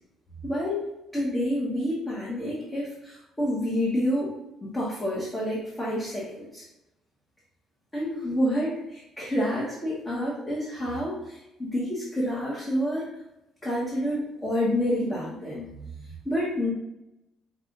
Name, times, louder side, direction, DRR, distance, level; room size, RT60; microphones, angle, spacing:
voice 1, 0.4-0.9 1.1-4.3 4.6-6.2 6.5-6.6 7.9-13.1 13.6-15.7 16.2-16.7, equal, 10° left, -7 dB, 1.1 m, -28 dB
5.5 x 2.4 x 3.7 m, 0.90 s
cardioid pair, 150°, 0 cm